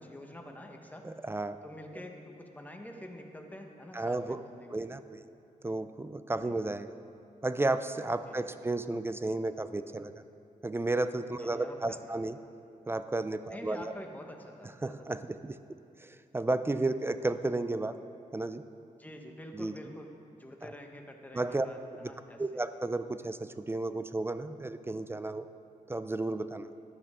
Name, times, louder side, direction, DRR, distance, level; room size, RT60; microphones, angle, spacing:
voice 1, 0.0-1.1 1.6-4.8 6.4-6.5 8.3-8.5 11.4-12.2 13.5-14.9 16.8-16.9 19.0-22.4, left 1 dB, 10° left, 3 dB, 1.2 m, -47 dB
voice 2, 1.0-1.6 3.9-4.4 4.7-5.2 5.6-6.9 7.4-10.1 10.6-12.4 12.9-13.9 14.8-17.9 18.3-18.6 19.5-19.7 20.6-20.7 21.3-21.7 22.0-22.1 22.4-25.5 25.9-26.7, right 2 dB, 15° right, 11 dB, 0.4 m, -33 dB
13.5 x 9.7 x 3.7 m, 2.6 s
cardioid pair, 80°, 14 cm